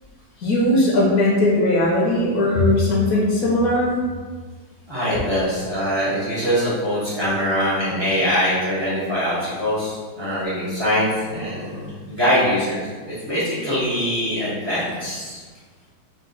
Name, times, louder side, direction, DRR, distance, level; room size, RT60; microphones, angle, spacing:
voice 1, 0.4-3.9, left 1 dB, 65° left, -4 dB, 0.9 m, -18 dB
voice 2, 4.9-15.4, equal, 30° right, -10 dB, 0.4 m, -23 dB
3.9 x 2.5 x 3.9 m, 1.5 s
omnidirectional pair, 2.3 m